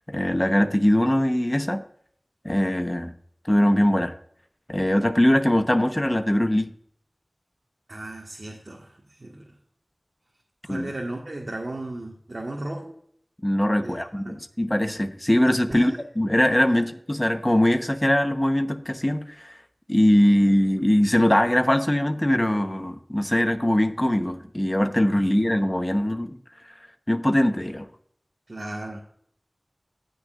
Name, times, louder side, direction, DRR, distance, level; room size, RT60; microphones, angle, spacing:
voice 1, 0.1-1.8 2.4-3.1 3.5-4.1 4.7-6.7 10.7-10.9 13.4-19.6 19.9-26.4 27.1-27.9, left 1 dB, 20° left, 8 dB, 1.0 m, -21 dB
voice 2, 7.9-9.4 10.6-12.9 13.8-14.4 15.7-16.0 16.7-16.8 28.5-29.0, right 1 dB, 60° right, -2 dB, 1.6 m, -35 dB
18.0 x 6.4 x 2.5 m, 0.64 s
wide cardioid pair, 50°, 0 cm